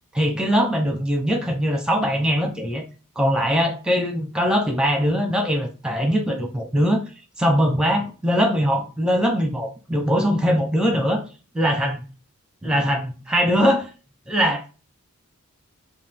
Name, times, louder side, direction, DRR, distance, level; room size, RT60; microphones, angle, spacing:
voice 1, 0.1-2.8 3.2-7.0 7.4-11.2 11.5-12.0 12.6-13.9 14.3-14.7, equal, 5° right, 3 dB, 0.9 m, -21 dB
5.5 x 2.5 x 3.5 m, 0.32 s
head